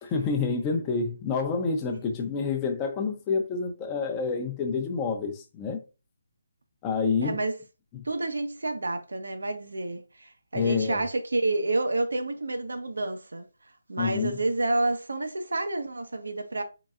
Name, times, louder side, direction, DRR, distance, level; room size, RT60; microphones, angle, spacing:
voice 1, 0.0-5.8 6.8-7.4 7.9-8.1 10.5-11.0 14.0-14.4, left 5 dB, 15° left, 0.6 m, -28 dB
voice 2, 7.2-7.5 8.0-13.5 13.9-16.6, right 2 dB, 85° right, 0.8 m, -29 dB
3.9 x 3.1 x 2.4 m
hypercardioid pair, 165°, 0 cm